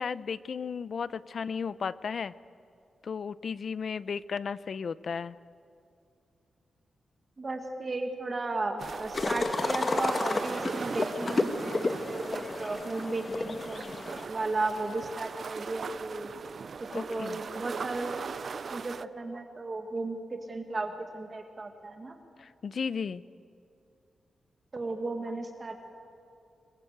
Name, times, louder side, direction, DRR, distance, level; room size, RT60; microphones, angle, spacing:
voice 1, 0.0-2.3 3.0-5.4 16.9-17.4 22.4-23.2, left 6 dB, 50° left, 17 dB, 0.6 m, -34 dB
voice 2, 7.4-13.9 14.3-16.3 16.9-18.2 18.7-22.2 24.7-25.9, right 2 dB, 30° right, 5 dB, 1.7 m, -35 dB
sound 1, 8.8-19.1, right 5 dB, 45° right, 0.5 m, -39 dB
sound 2, 9.1-14.2, left 3 dB, 30° left, 1.4 m, -32 dB
26.0 x 21.5 x 8.0 m, 2.5 s
wide cardioid pair, 160°, 0 cm